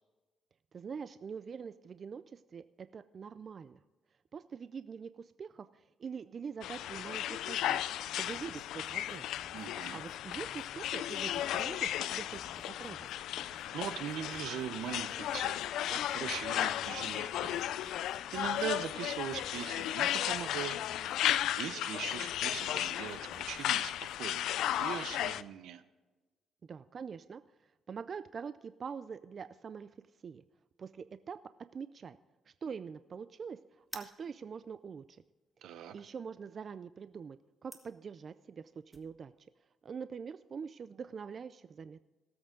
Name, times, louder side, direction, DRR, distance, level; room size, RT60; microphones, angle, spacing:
voice 1, 0.7-3.8 4.3-7.8 8.2-9.2 9.9-12.4 12.7-13.1 26.7-27.4 27.9-29.9 30.2-30.4 30.8-31.4 31.7-32.2 32.5-35.2 35.6-37.4 37.6-39.3 39.8-42.0, right 6 dB, 45° right, 13 dB, 0.4 m, -44 dB
sound 1, 6.6-25.4, left 12 dB, 85° left, 0.4 m, -35 dB
sound 2, 8.3-24.3, equal, 40° left, 4.3 m, -60 dB
voice 2, 9.5-10.0 13.4-17.6 18.3-20.8 21.2-25.8 35.6-35.9, right 10 dB, 80° right, 12 dB, 0.8 m, -41 dB
sound 3, 33.8-39.1, right 1 dB, 5° right, 1.6 m, -53 dB
18.0 x 7.8 x 3.8 m, 1.2 s
cardioid pair, 90°, 0 cm